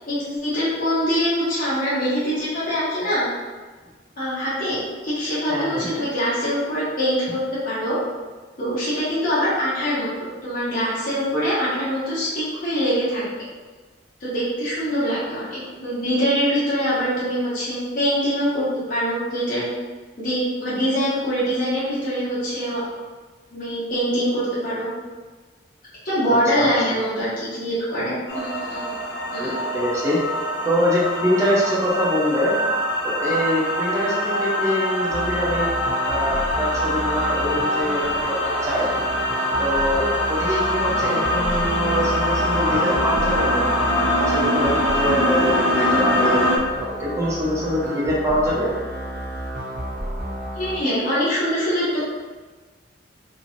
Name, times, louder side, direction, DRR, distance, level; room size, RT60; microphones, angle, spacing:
voice 1, 0.1-3.3 4.2-7.4 7.6-8.0 8.6-13.2 14.2-19.7 20.2-22.8 23.5-24.9 26.0-29.0 29.3-29.5 50.5-52.0, equal, 50° left, -10 dB, 1.1 m, -24 dB
voice 2, 5.5-6.1 26.5-26.7 29.4-30.2 30.6-32.5 33.0-35.7 36.1-38.9 39.6-43.7 44.1-46.4 46.7-48.7, equal, 15° right, -6 dB, 0.7 m, -24 dB
sound 1, 28.3-46.6, left 1 dB, 90° left, 0.7 m, -23 dB
sound 2, 35.1-50.8, right 1 dB, 50° right, 0.8 m, -31 dB
3.0 x 2.7 x 2.6 m, 1.4 s
head